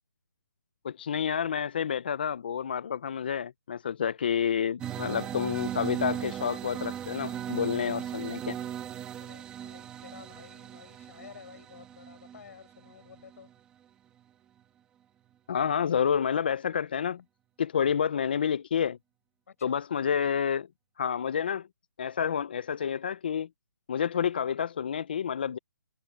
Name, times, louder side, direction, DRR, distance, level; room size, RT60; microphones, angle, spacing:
voice 1, 0.8-8.6 15.5-17.2 17.6-19.0 19.6-20.7 21.0-21.7 22.0-23.5 23.9-25.6, left 8 dB, 30° left, 0.4 m, -29 dB
sound 1, 4.8-13.6, right 10 dB, 10° right, 1.2 m, -38 dB
voice 2, 9.2-13.5 19.5-19.8, left 7 dB, 45° left, 7.2 m, -51 dB
hypercardioid pair, 170°, 11 cm